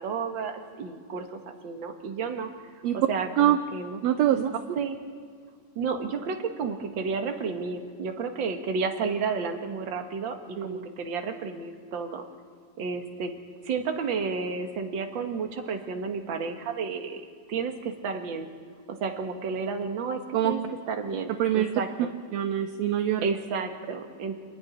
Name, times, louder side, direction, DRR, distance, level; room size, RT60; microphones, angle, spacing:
voice 1, 0.0-2.5 2.9-4.0 4.3-5.0 5.8-12.2 12.8-13.3 13.6-17.2 17.5-18.5 19.0-20.2 20.4-20.6 20.9-21.9 23.2-24.4, right 5 dB, 45° right, 5 dB, 2.0 m, -31 dB
voice 2, 4.0-4.4 10.6-10.9 20.3-20.5 21.4-21.7 22.3-23.2, right 11 dB, 75° right, 8 dB, 1.8 m, -24 dB
28.5 x 10.0 x 9.9 m, 2.2 s
omnidirectional pair, 3.3 m